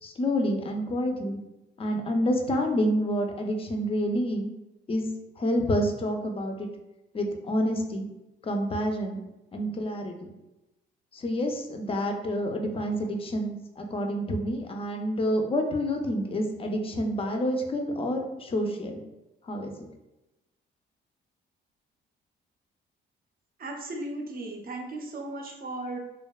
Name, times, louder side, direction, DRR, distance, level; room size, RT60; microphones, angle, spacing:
voice 1, 0.0-1.4 1.8-4.5 4.9-5.1 5.4-6.7 7.1-8.1 8.4-9.2 9.5-10.3 11.1-19.0 19.4-19.7, equal, 30° left, 4 dB, 0.4 m, -28 dB
voice 2, 23.6-26.0, right 2 dB, 50° right, 2 dB, 0.6 m, -36 dB
2.7 x 2.1 x 2.3 m, 0.97 s
cardioid pair, 90°, 20 cm